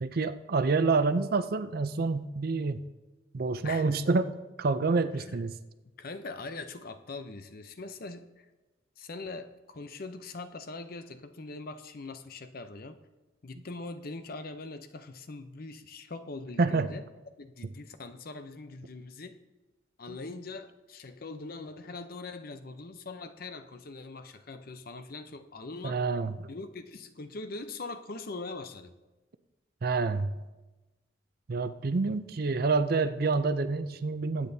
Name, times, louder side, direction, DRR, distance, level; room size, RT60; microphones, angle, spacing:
voice 1, 0.0-2.9 3.3-5.6 16.6-16.9 20.1-20.2 25.8-26.5 29.8-30.4 31.5-34.5, right 4 dB, 55° right, 12 dB, 0.5 m, -28 dB
voice 2, 3.6-4.0 5.2-5.4 6.0-8.5 9.0-13.0 13.4-17.0 17.4-19.4 20.0-26.0 26.5-28.9, left 3 dB, 50° left, 9 dB, 0.7 m, -42 dB
21.0 x 8.8 x 2.7 m, 1.1 s
head